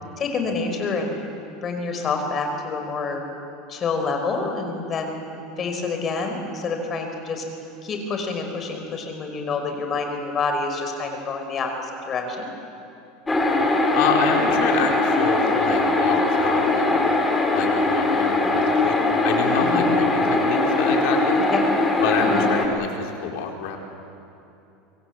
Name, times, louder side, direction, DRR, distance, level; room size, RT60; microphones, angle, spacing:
voice 1, 0.2-1.2 1.6-3.2 3.7-5.2 5.6-7.4 7.8-12.5 19.6-19.9 21.3-21.6 22.2-22.5, left 4 dB, 35° left, 4 dB, 5.0 m, -27 dB
sound 1, 13.3-22.7, left 2 dB, 15° left, 3.6 m, -21 dB
voice 2, 13.9-17.0 17.5-19.0 19.2-21.4 22.0-23.8, left 6 dB, 70° left, 1 dB, 4.5 m, -27 dB
25.0 x 24.5 x 8.3 m, 2.8 s
supercardioid pair, 125°, 0 cm